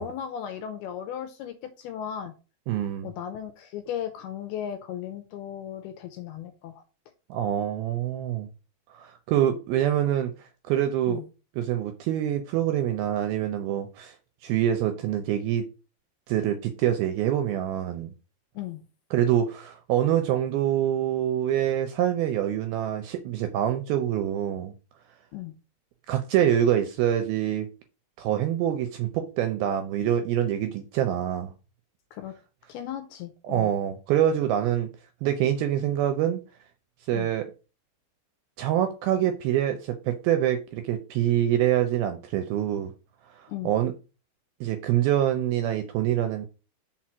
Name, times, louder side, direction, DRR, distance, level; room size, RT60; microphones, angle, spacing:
voice 1, 0.0-2.3 3.0-6.8 11.1-11.2 18.6-18.8 25.3-25.5 32.1-32.3 32.7-33.7 37.1-37.3 43.5-43.7, left 9 dB, 80° left, 2.4 m, -36 dB
voice 2, 2.7-3.1 7.3-8.5 8.9-11.2 11.6-14.2 14.4-15.7 16.3-18.1 19.1-24.7 26.1-27.7 28.2-31.5 33.5-34.9 35.2-36.4 37.1-37.5 38.6-42.9 43.3-43.9 44.6-46.5, right 11 dB, 80° right, 2.2 m, -25 dB
6.0 x 4.6 x 5.9 m
omnidirectional pair, 5.0 m